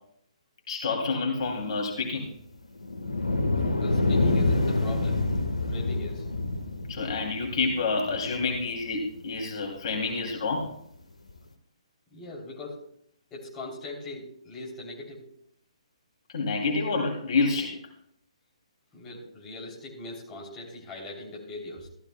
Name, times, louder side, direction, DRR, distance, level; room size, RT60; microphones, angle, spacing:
voice 1, 0.7-2.3 6.9-10.7 16.3-17.7, left 4 dB, 50° left, 1 dB, 2.9 m, -28 dB
sound 1, 2.8-9.2 9.8-9.9 11.3-11.4, left 2 dB, 85° left, 1.5 m, -27 dB
voice 2, 3.8-5.3 5.7-6.3 12.1-12.8 13.3-15.2 18.9-21.9, left 2 dB, 15° left, -3 dB, 3.2 m, -40 dB
15.0 x 13.5 x 2.3 m, 0.69 s
figure-of-eight pair, 135°, 4 cm